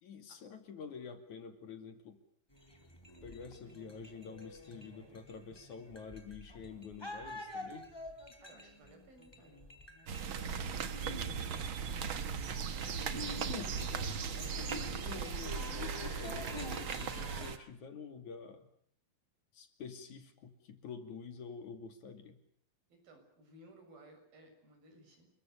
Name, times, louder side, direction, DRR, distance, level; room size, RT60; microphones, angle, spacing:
voice 1, 0.0-2.2 3.2-7.9 13.1-18.7 19.5-22.4, left 6 dB, 55° left, 8 dB, 3.7 m, -48 dB
sound 1, 2.5-17.5, left 1 dB, 5° left, 3.6 m, -48 dB
voice 2, 8.4-9.7 10.1-11.3 22.9-25.3, right 1 dB, 80° right, 5 dB, 8.9 m, -59 dB
sound 2, 10.1-17.6, right 6 dB, 55° right, 1.4 m, -38 dB
30.0 x 23.0 x 6.8 m, 0.64 s
omnidirectional pair, 4.1 m